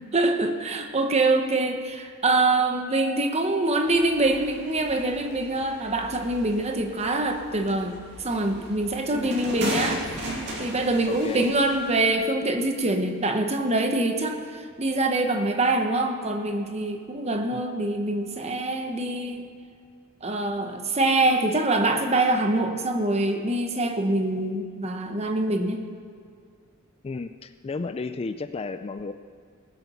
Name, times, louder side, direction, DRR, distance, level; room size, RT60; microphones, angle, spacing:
voice 1, 0.1-10.0 10.6-19.4 20.2-25.8, right 2 dB, 30° right, 5 dB, 1.1 m, -24 dB
sound 1, 3.9-12.0, right 1 dB, 55° right, 2.5 m, -36 dB
voice 2, 11.1-11.5 17.5-17.6 27.0-29.1, left 3 dB, 30° left, 10 dB, 0.3 m, -33 dB
19.0 x 8.0 x 5.7 m, 2.2 s
head